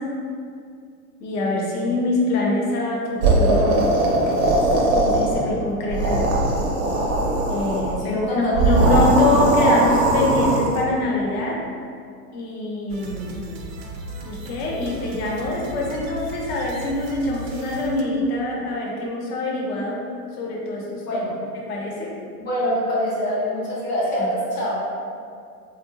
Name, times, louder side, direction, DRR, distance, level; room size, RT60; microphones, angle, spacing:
voice 1, 1.2-3.9 4.9-6.2 7.5-11.6 12.3-13.4 14.2-20.1 20.3-21.2 21.7-22.1 24.2-24.3, left 2 dB, 65° left, -2 dB, 0.8 m, -24 dB
sound 1, 3.2-5.5 5.8-8.0 8.5-10.8, right 2 dB, 40° right, 0.5 m, -19 dB
voice 2, 8.0-8.7 21.1-21.3 22.4-24.8, equal, 25° left, -7 dB, 0.5 m, -25 dB
sound 2, 12.9-18.0, right 2 dB, 85° right, 0.6 m, -36 dB
2.7 x 2.0 x 2.7 m, 2.3 s
hypercardioid pair, 130°, 48 cm